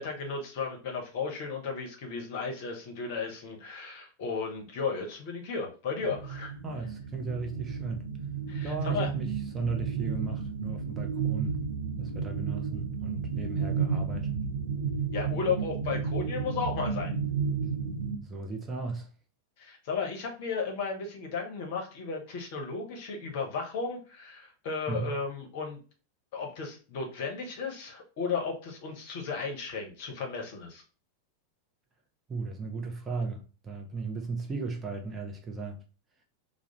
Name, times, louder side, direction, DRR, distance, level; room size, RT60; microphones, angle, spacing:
voice 1, 0.0-6.6 8.5-9.1 15.1-17.1 19.6-25.8 26.3-30.8, left 5 dB, 50° left, 0.7 m, -34 dB
sound 1, 6.0-18.2, right 6 dB, 70° right, 0.4 m, -32 dB
voice 2, 6.6-8.1 8.6-11.6 12.0-14.4 18.2-19.1 24.9-25.1 32.3-35.8, right 4 dB, 20° right, 0.5 m, -36 dB
2.3 x 2.0 x 2.9 m
figure-of-eight pair, 90°, 0 cm